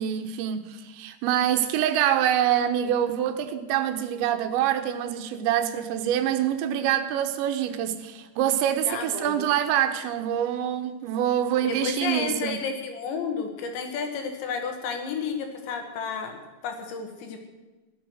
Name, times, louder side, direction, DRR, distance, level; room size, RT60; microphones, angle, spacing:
voice 1, 0.0-12.6, right 10 dB, 85° right, 8 dB, 3.3 m, -25 dB
voice 2, 8.9-9.4 11.6-16.4 16.6-17.4, left 5 dB, 85° left, 4 dB, 4.2 m, -31 dB
16.5 x 12.0 x 6.4 m, 1.2 s
omnidirectional pair, 5.0 m